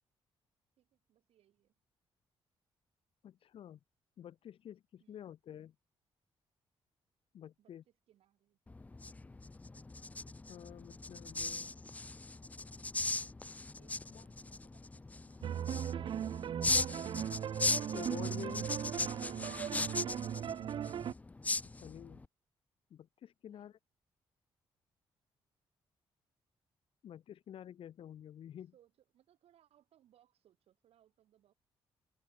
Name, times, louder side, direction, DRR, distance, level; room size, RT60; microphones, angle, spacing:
voice 1, 0.8-1.7 5.0-5.3 7.6-8.6 13.8-17.4 23.4-23.7 28.6-31.5, right 11 dB, 80° right, 4.9 m, -70 dB
voice 2, 3.2-3.8 4.2-5.7 7.3-7.8 10.5-11.8 14.1-14.2 17.9-18.7 21.6-22.2 22.9-23.8 27.0-28.7, left 10 dB, 65° left, 0.8 m, -49 dB
sound 1, 8.7-22.2, left 3 dB, 15° left, 0.4 m, -39 dB
sound 2, 15.4-21.1, right 9 dB, 55° right, 0.5 m, -38 dB
cardioid pair, 90°, 10 cm